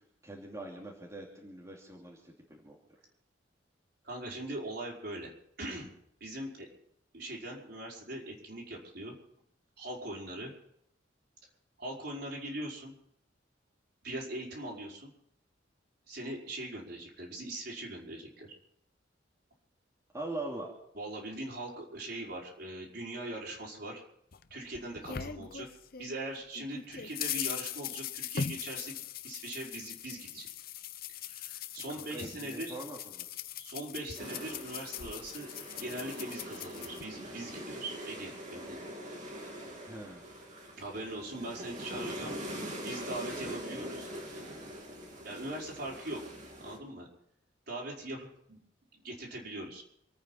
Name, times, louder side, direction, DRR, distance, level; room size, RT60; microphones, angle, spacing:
voice 1, 0.0-2.8 20.1-20.7 31.9-33.2 39.9-40.2, right 2 dB, 15° right, -3 dB, 2.7 m, -42 dB
voice 2, 4.0-5.3 5.6-5.9 6.2-6.7 7.1-9.1 9.8-10.5 11.8-12.9 14.0-15.1 16.1-18.5 21.0-24.0 24.5-25.7 26.0-28.9 29.2-30.5 31.2-32.8 33.6-35.5 35.8-38.9 40.8-42.4 42.7-44.1 45.2-46.2 46.6-47.1 47.7-48.6 48.9-49.8, right 1 dB, 55° right, -2 dB, 5.2 m, -41 dB
sound 1, 24.3-26.2 26.5-37.0, left 8 dB, 50° left, 0.7 m, -41 dB
sound 2, 34.2-46.8, equal, 40° right, 3.0 m, -43 dB
27.5 x 9.3 x 5.7 m, 0.72 s
head